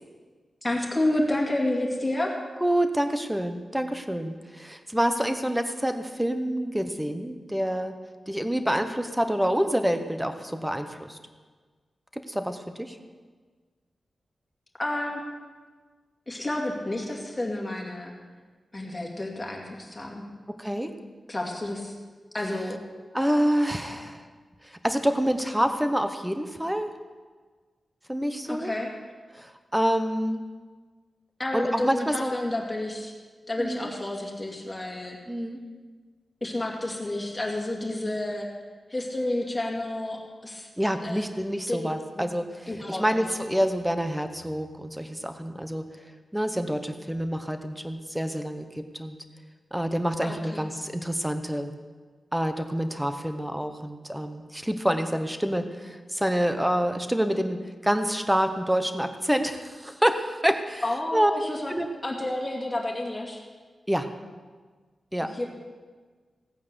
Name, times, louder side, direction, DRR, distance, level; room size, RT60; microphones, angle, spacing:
voice 1, 0.6-2.4 14.8-15.3 16.3-18.1 18.7-20.3 21.3-21.9 22.3-22.8 28.4-28.9 31.4-33.1 33.5-35.2 36.4-38.5 38.9-40.7 41.0-41.2 41.7-41.9 42.7-43.3 50.2-50.6 60.8-61.7 62.0-63.4 65.2-65.5, left 1 dB, 15° left, -1 dB, 2.4 m, -30 dB
voice 2, 2.6-7.9 8.3-11.2 12.1-13.0 20.6-20.9 23.1-24.3 24.6-26.9 28.1-28.7 29.3-30.5 31.5-32.3 33.6-33.9 35.3-35.6 40.8-45.8 46.3-49.2 49.7-51.7 52.3-60.8 61.1-61.3 61.7-61.9 63.9-64.1 65.1-65.3, equal, 5° right, 8 dB, 0.9 m, -27 dB
16.0 x 9.3 x 6.9 m, 1.5 s
wide cardioid pair, 160°, 0 cm